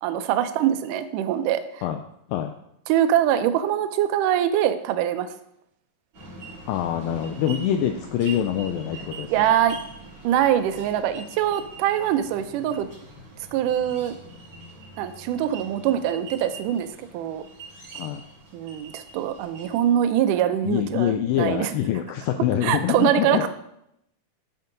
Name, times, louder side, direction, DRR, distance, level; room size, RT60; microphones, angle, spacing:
voice 1, 0.0-1.8 2.9-5.3 7.7-7.8 9.3-9.8 10.2-12.9 13.5-14.2 15.0-17.4 18.5-21.7 22.6-23.5, right 10 dB, 90° right, 9 dB, 1.8 m, -23 dB
sound 1, 6.1-19.9, right 3 dB, 35° right, 4.5 m, -43 dB
voice 2, 6.7-9.5 17.9-18.2 20.6-23.5, left 10 dB, 85° left, 6 dB, 2.0 m, -25 dB
12.5 x 4.6 x 3.9 m, 0.77 s
omnidirectional pair, 4.5 m